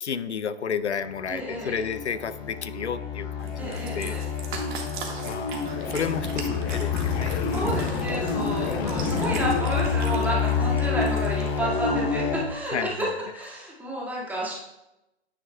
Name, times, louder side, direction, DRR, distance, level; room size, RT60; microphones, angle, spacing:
voice 1, 0.0-4.2 5.2-5.6 5.9-7.4 8.7-9.1 12.7-12.9, left 6 dB, 85° left, 13 dB, 0.6 m, -31 dB
sound 1, 1.1-12.5, left 5 dB, 15° left, 0.6 m, -28 dB
voice 2, 1.3-1.8 3.6-4.3 7.5-13.1 13.3-14.5, right 1 dB, 5° right, -5 dB, 1.9 m, -31 dB
Cat, 3.4-11.6, right 5 dB, 45° right, 1.7 m, -39 dB
9.6 x 9.2 x 2.3 m, 0.93 s
figure-of-eight pair, 135°, 33 cm